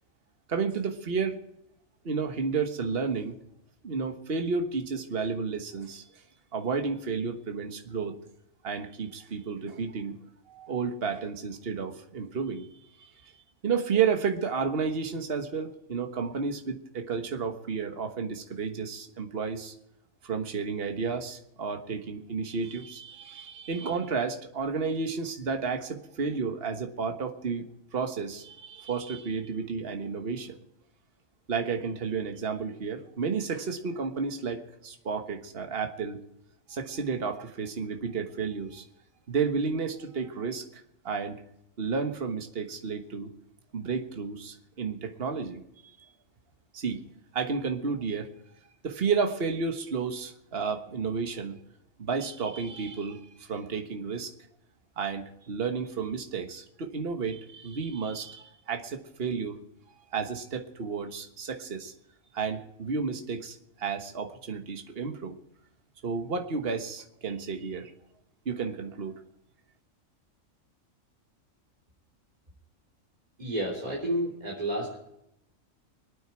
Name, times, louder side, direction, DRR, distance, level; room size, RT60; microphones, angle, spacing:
voice 1, 0.5-1.4 2.0-3.4 3.8-6.0 6.5-8.2 8.6-10.2 10.5-12.7 13.0-13.3 13.6-19.7 20.2-30.6 31.5-36.2 36.7-38.8 39.3-41.4 41.8-43.3 43.7-45.6 46.7-47.0 47.3-48.3 48.8-51.6 52.0-54.3 55.0-59.6 59.9-61.9 62.3-65.4 66.0-67.9 68.4-69.1, right 5 dB, 50° right, 5 dB, 1.5 m, -32 dB
voice 2, 73.4-75.0, right 1 dB, 30° right, -4 dB, 3.8 m, -30 dB
25.0 x 9.3 x 4.7 m, 0.80 s
omnidirectional pair, 1.4 m